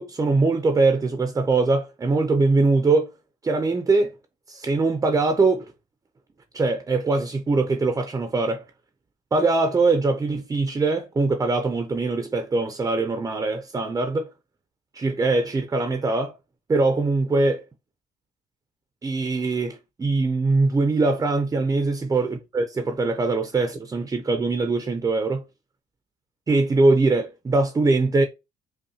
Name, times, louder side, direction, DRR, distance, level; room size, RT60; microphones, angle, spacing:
voice 1, 0.0-3.1 3.4-4.1 4.5-5.7 6.5-8.6 9.3-14.3 14.9-16.3 16.7-17.6 19.0-25.4 26.5-28.3, right 3 dB, 20° right, 0.5 m, -22 dB
5.4 x 2.2 x 2.7 m
cardioid pair, 110°, 17 cm